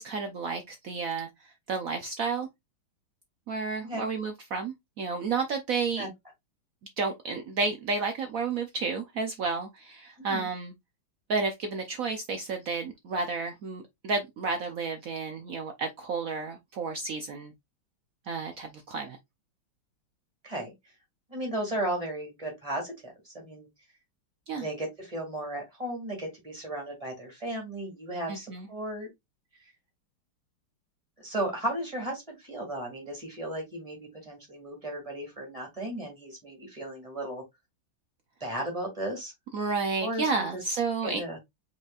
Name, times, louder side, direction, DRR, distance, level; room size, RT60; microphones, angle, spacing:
voice 1, 0.0-2.5 3.5-6.1 7.0-10.7 11.3-17.5 18.3-19.2 24.5-24.7 28.3-28.7 39.5-41.2, right 4 dB, 85° right, 0.7 m, -31 dB
voice 2, 10.2-10.5 20.4-20.7 21.3-23.7 24.5-29.1 31.2-37.4 38.4-39.3 40.0-40.6 41.0-41.4, right 1 dB, 15° right, 2.1 m, -35 dB
5.2 x 4.0 x 2.3 m
omnidirectional pair, 2.3 m